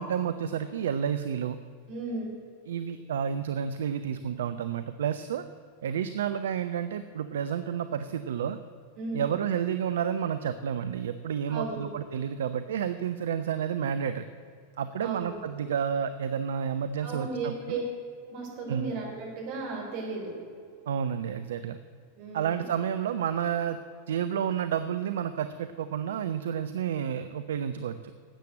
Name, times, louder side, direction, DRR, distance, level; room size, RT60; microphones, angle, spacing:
voice 1, 0.0-1.6 2.7-5.4 5.8-8.6 9.1-14.2 14.8-17.8 18.7-18.9 20.9-21.8 22.3-23.8 24.1-28.0, right 8 dB, 60° right, 10 dB, 0.5 m, -30 dB
voice 2, 1.9-2.3 9.0-9.3 11.5-11.9 15.0-15.4 17.0-17.8 18.3-20.4 22.2-22.6, right 3 dB, 45° right, -1 dB, 4.1 m, -35 dB
12.5 x 8.4 x 7.7 m, 2.2 s
figure-of-eight pair, 90°, 0 cm